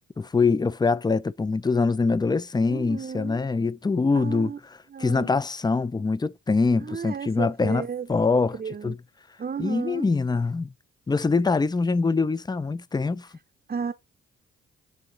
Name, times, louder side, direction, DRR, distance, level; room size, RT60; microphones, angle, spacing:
voice 1, 0.2-4.5 5.0-8.6 8.8-9.0 9.6-10.7 11.1-13.3, left 4 dB, 15° left, 0.5 m, -24 dB
voice 2, 2.7-3.4 4.1-4.6 4.9-5.4 6.8-8.1 8.5-9.0 9.4-10.1 13.7-13.9, right 6 dB, 30° right, 0.8 m, -33 dB
10.5 x 3.8 x 3.9 m
hypercardioid pair, 45°, 30 cm